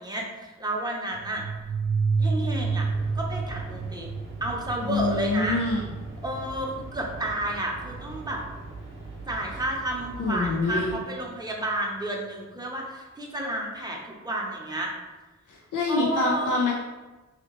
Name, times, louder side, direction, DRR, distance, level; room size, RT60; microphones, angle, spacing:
voice 1, 0.0-1.4 2.2-2.9 3.1-4.1 4.4-5.6 6.2-8.4 9.3-14.9 15.9-16.5, right 1 dB, 15° right, -1 dB, 0.7 m, -31 dB
sound 1, 1.1-9.5, right 4 dB, 65° right, 0.5 m, -31 dB
sound 2, 2.6-11.0, right 3 dB, 40° right, 0.9 m, -42 dB
voice 2, 4.8-5.9 10.2-11.0 15.5-16.7, left 3 dB, 85° left, -2 dB, 0.5 m, -26 dB
2.9 x 2.9 x 2.9 m, 1.2 s
cardioid pair, 45°, 30 cm